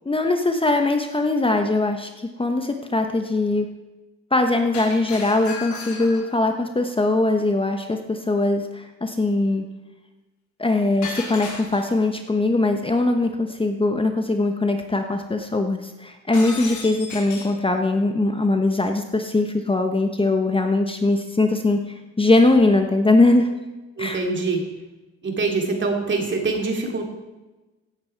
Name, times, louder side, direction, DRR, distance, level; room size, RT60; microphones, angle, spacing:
voice 1, 0.0-3.7 4.3-9.6 10.6-23.5 24.0-24.2, left 2 dB, 20° left, 5 dB, 1.1 m, -21 dB
Shatter, 4.7-6.4 11.0-12.1 16.3-17.6, left 4 dB, 70° left, 4.5 m, -35 dB
voice 2, 24.0-24.6 25.2-27.0, right 3 dB, 40° right, 2 dB, 2.9 m, -24 dB
16.5 x 8.7 x 4.6 m, 1.1 s
cardioid pair, 90°, 30 cm